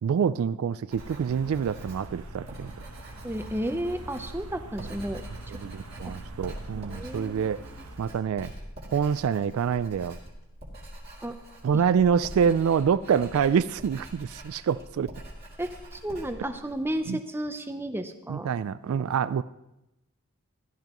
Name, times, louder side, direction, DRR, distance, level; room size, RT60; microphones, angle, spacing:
voice 1, 0.0-2.7 5.6-7.6 8.0-8.5 8.9-10.2 11.6-15.1 17.1-17.2 18.3-19.4, right 7 dB, 70° right, 15 dB, 0.3 m, -26 dB
Writing, 0.9-17.0, equal, 45° right, 2.9 m, -45 dB
sound 1, 1.0-8.0, right 2 dB, 85° right, 1.0 m, -44 dB
voice 2, 3.2-5.3 6.0-6.2 6.7-7.9 11.2-11.4 11.7-11.8 15.6-18.5, right 1 dB, 10° right, 8 dB, 0.6 m, -33 dB
16.0 x 13.0 x 3.0 m, 0.92 s
head